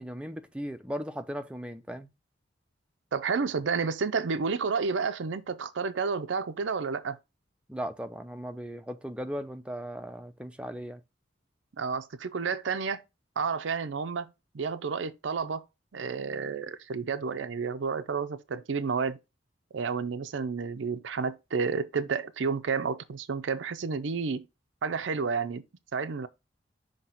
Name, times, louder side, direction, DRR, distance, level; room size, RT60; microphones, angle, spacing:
voice 1, 0.0-2.1 7.7-11.0, equal, 5° right, 0.5 m, -37 dB
voice 2, 3.1-7.2 11.8-13.0 13.4-15.6 15.9-19.2 19.7-24.4 24.8-25.6 25.9-26.3, right 5 dB, 85° right, 0.5 m, -31 dB
5.8 x 2.9 x 5.5 m
head